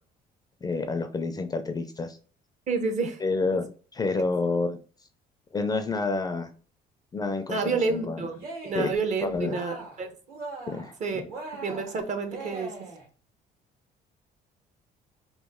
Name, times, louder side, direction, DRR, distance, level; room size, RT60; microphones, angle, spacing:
voice 1, 0.6-2.2 3.2-3.7 3.9-4.8 5.5-6.5 7.1-8.2 8.7-8.9 9.2-9.6 10.7-11.2, left 3 dB, 20° left, 7 dB, 0.4 m, -29 dB
voice 2, 2.7-3.2 7.5-10.2 11.0-11.2 11.5-12.9, right 4 dB, 45° right, 6 dB, 0.7 m, -29 dB
Cheering, 8.3-9.0 9.3-10.0 10.3-11.0 11.3-13.1, right 3 dB, 65° right, 1.7 m, -40 dB
3.0 x 2.4 x 3.6 m, 0.40 s
cardioid pair, 110°, 17 cm